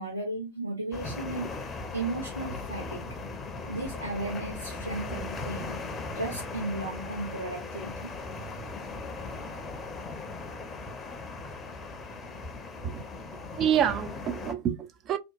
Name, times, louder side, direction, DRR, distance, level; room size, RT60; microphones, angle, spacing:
voice 1, 0.0-1.5 1.9-3.3 3.7-5.8 6.1-8.1, right 2 dB, 85° right, 0.6 m, -35 dB
sound 1, 0.9-14.5, left 3 dB, 20° left, 0.6 m, -38 dB
voice 2, 13.6-15.2, right 9 dB, 30° right, 0.4 m, -27 dB
2.9 x 2.1 x 2.4 m
figure-of-eight pair, 90°, 0 cm